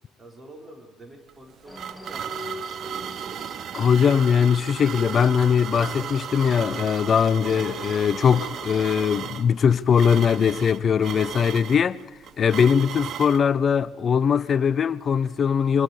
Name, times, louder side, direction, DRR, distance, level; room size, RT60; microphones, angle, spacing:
voice 1, 0.2-3.5, right 1 dB, 30° right, 5.8 m, -48 dB
sound 1, 1.3-13.4, right 9 dB, 55° right, 0.9 m, -35 dB
sound 2, 1.6-9.0, left 2 dB, 5° left, 2.2 m, -44 dB
voice 2, 3.7-12.0 12.4-15.8, left 7 dB, 45° left, 0.7 m, -21 dB
26.5 x 23.0 x 5.0 m
hypercardioid pair, 60°, 0 cm